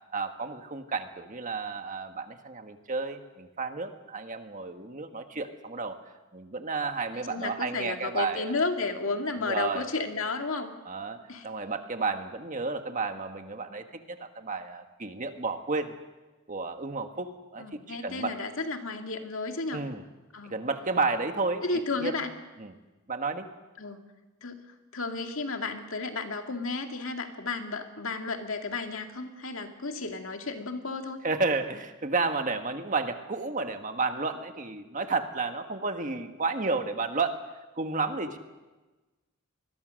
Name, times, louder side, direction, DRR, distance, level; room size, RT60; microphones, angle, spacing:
voice 1, 0.1-6.0 6.3-8.5 9.4-9.9 10.8-15.9 16.5-18.3 19.7-20.0 20.5-22.2 22.6-22.7 23.1-23.5 31.2-37.4 37.8-38.4, right 3 dB, 35° right, 7 dB, 1.4 m, -32 dB
voice 2, 7.1-10.7 11.3-11.5 17.6-19.8 20.3-20.6 21.6-22.3 23.8-24.0 24.4-24.6 24.9-31.2, left 3 dB, 60° left, 4 dB, 2.3 m, -33 dB
25.5 x 21.5 x 6.4 m, 1.2 s
head